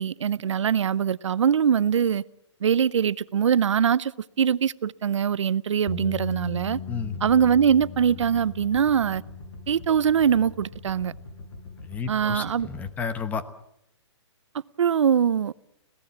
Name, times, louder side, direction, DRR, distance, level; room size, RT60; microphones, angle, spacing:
voice 1, 0.0-2.2 2.6-4.1 4.4-6.8 7.2-9.2 9.7-11.1 12.1-12.7 14.8-15.5, right 8 dB, 80° right, 0.7 m, -22 dB
sound 1, 5.9-12.1, left 8 dB, 45° left, 4.0 m, -40 dB
sound 2, 6.7-12.9, left 2 dB, 80° left, 8.0 m, -43 dB
voice 2, 6.9-7.2 11.8-13.4, left 5 dB, 10° left, 1.1 m, -32 dB
26.0 x 17.5 x 7.4 m
hypercardioid pair, 160°, 15 cm